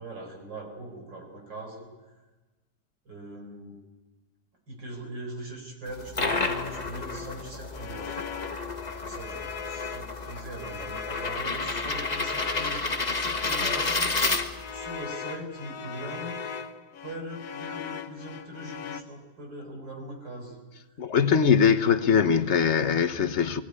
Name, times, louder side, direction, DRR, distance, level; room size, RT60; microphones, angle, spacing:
voice 1, 0.0-2.2 3.1-3.8 4.7-8.2 9.0-14.1 14.7-16.4 17.0-20.6, right 1 dB, 85° right, 5.3 m, -41 dB
sound 1, 5.9-14.9, left 3 dB, 25° left, 1.3 m, -31 dB
sound 2, 7.7-19.0, left 6 dB, 65° left, 1.5 m, -39 dB
voice 2, 21.0-23.6, left 7 dB, 45° left, 1.1 m, -22 dB
20.5 x 18.5 x 9.7 m
omnidirectional pair, 1.9 m